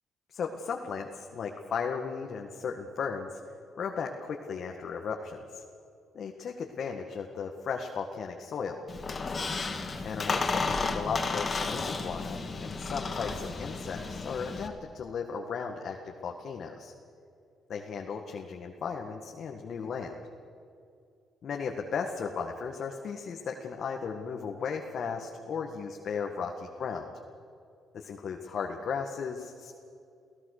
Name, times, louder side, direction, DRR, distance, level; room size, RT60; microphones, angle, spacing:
voice 1, 0.3-3.4 3.8-5.6 6.1-8.8 10.0-16.9 17.7-20.2 21.4-27.1 27.9-29.7, left 6 dB, 60° left, 2 dB, 1.8 m, -36 dB
Squeak, 8.9-14.7, left 4 dB, 35° left, 2.7 m, -33 dB
29.5 x 16.5 x 6.7 m, 2.5 s
cardioid pair, 90°, 0 cm